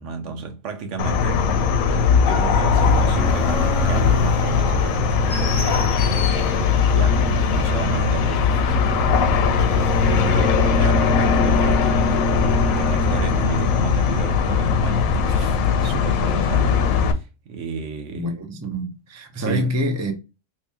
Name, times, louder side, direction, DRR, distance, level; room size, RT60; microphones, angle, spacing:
voice 1, 0.0-1.4 2.2-12.1 12.8-18.4 19.4-19.7, right 5 dB, 65° right, 1.0 m, -33 dB
sound 1, 1.0-17.1, left 5 dB, 90° left, 1.0 m, -19 dB
sound 2, 2.7-13.6, left 1 dB, 70° left, 1.2 m, -32 dB
voice 2, 18.1-20.1, equal, 25° right, 0.3 m, -26 dB
2.9 x 2.8 x 3.4 m
omnidirectional pair, 1.4 m